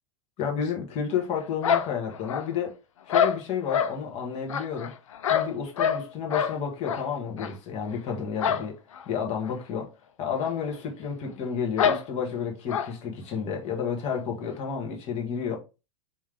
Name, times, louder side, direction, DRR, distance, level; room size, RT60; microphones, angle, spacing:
voice 1, 0.4-2.7 3.1-4.9 5.3-8.8 9.1-9.9 10.2-15.6, left 7 dB, 40° left, 1.3 m, -31 dB
sound 1, 1.6-2.7 3.1-4.0 4.5-6.1 6.3-6.6 6.8-7.0 7.4-7.5 8.4-8.7 8.9-9.0 9.4-9.5 10.4-10.5 10.8-10.9 11.8-12.0 12.7-12.9, left 8 dB, 80° left, 0.5 m, -25 dB
3.8 x 3.0 x 3.4 m
hypercardioid pair, 105°, 16 cm